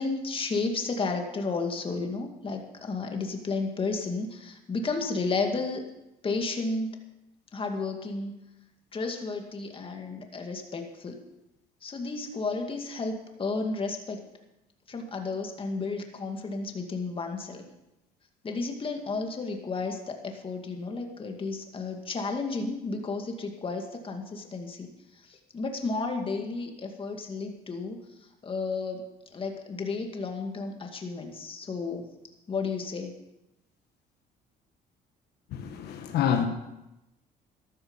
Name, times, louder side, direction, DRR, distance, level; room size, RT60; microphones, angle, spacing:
voice 1, 0.0-5.8 6.2-6.9 7.5-8.3 8.9-11.2 11.8-14.2 14.9-17.6 18.4-24.9 25.3-28.0 28.4-29.0 29.3-32.1 32.5-33.1, left 3 dB, 30° left, 3 dB, 2.2 m, -32 dB
voice 2, 35.5-36.5, left 8 dB, 75° left, 5 dB, 1.4 m, -27 dB
13.5 x 12.0 x 5.6 m, 0.93 s
cardioid pair, 110°, 17 cm